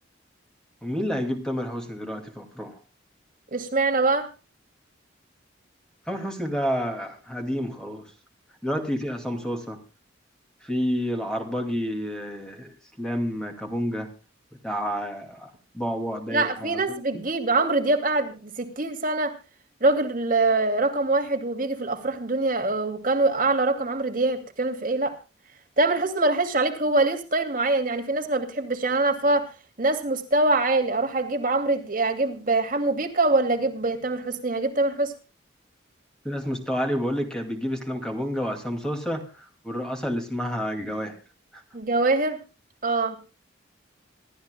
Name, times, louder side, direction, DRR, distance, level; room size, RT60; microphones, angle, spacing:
voice 1, 0.8-2.8 6.1-8.1 8.6-9.8 10.6-14.1 14.6-17.2 36.2-41.2 41.5-41.6, equal, 5° left, 4 dB, 2.4 m, -29 dB
voice 2, 3.5-4.3 16.3-19.3 19.8-25.1 25.8-29.5 29.8-35.1 41.7-42.4 42.8-43.2, right 2 dB, 45° right, 4 dB, 2.5 m, -24 dB
26.5 x 13.0 x 2.3 m, 0.32 s
head